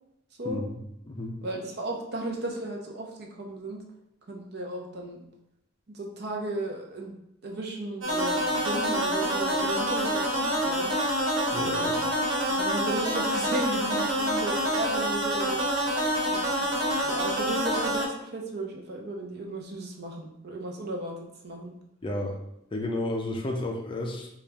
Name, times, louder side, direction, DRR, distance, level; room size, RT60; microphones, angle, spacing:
voice 1, 0.4-0.8 1.1-1.4 11.5-12.0 22.0-22.3 22.7-24.3, left 1 dB, 25° left, 1 dB, 0.4 m, -32 dB
voice 2, 1.4-3.8 4.3-5.2 5.9-7.1 7.4-10.9 11.6-12.0 12.5-15.6 16.2-21.7, right 1 dB, 55° right, 0 dB, 0.7 m, -35 dB
sound 1, 8.0-18.0, equal, 80° right, 1.2 m, -27 dB
4.0 x 2.4 x 3.4 m, 0.81 s
head